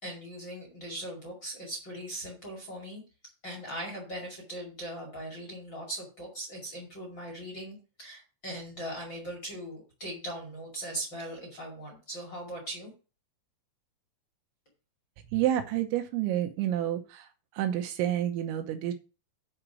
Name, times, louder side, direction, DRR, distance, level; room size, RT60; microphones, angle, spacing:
voice 1, 0.0-3.0 3.4-12.9, right 1 dB, 35° left, 2 dB, 2.0 m, -40 dB
voice 2, 15.3-17.3 17.5-18.9, right 11 dB, 80° right, 6 dB, 3.1 m, -29 dB
9.0 x 5.0 x 6.0 m, 0.34 s
omnidirectional pair, 5.5 m